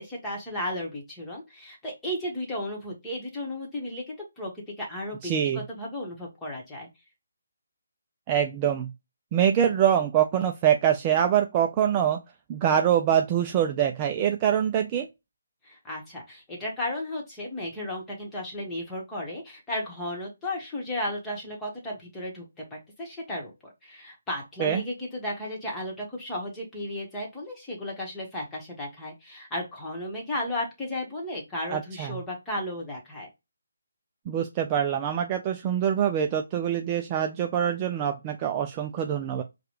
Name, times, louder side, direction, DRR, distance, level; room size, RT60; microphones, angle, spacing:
voice 1, 0.0-4.5 4.8-6.9 15.6-23.5 23.8-33.3, left 1 dB, 10° left, 1.2 m, -34 dB
voice 2, 5.2-5.6 8.3-8.9 9.3-12.2 12.5-15.1 24.6-24.8 31.7-32.2 34.3-39.4, right 9 dB, 20° right, 0.3 m, -24 dB
4.8 x 2.2 x 3.0 m
hypercardioid pair, 160°, 0 cm